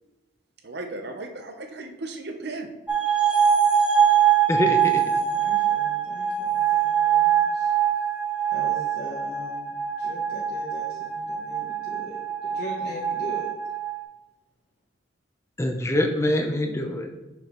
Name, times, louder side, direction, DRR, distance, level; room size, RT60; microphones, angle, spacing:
voice 1, 0.6-2.7, right 2 dB, 55° right, 6 dB, 0.7 m, -35 dB
sound 1, 2.9-14.0, right 8 dB, 5° right, 1.1 m, -23 dB
voice 2, 4.5-5.0 15.6-17.1, left 1 dB, 15° left, 3 dB, 0.6 m, -24 dB
voice 3, 5.1-7.7 8.5-9.7 10.0-13.5, left 1 dB, 50° left, -4 dB, 0.9 m, -40 dB
6.2 x 5.4 x 3.0 m, 1.1 s
head